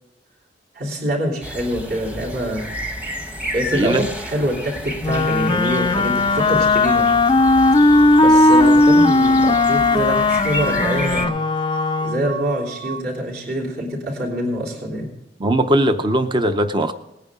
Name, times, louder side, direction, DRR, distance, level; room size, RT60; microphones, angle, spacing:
voice 1, 0.7-2.7 3.5-7.1 8.1-11.3 12.0-15.1, equal, 55° right, -4 dB, 3.4 m, -25 dB
sound 1, 1.4-11.3, equal, 10° right, 1.0 m, -31 dB
voice 2, 3.7-4.0 15.4-16.9, right 1 dB, 25° right, 8 dB, 0.6 m, -19 dB
Wind instrument woodwind instrument, 5.0-12.4, left 2 dB, 25° left, 0.4 m, -16 dB
sound 2, 5.5-13.0, right 7 dB, 85° right, 0.7 m, -33 dB
19.5 x 9.4 x 3.7 m, 0.92 s
head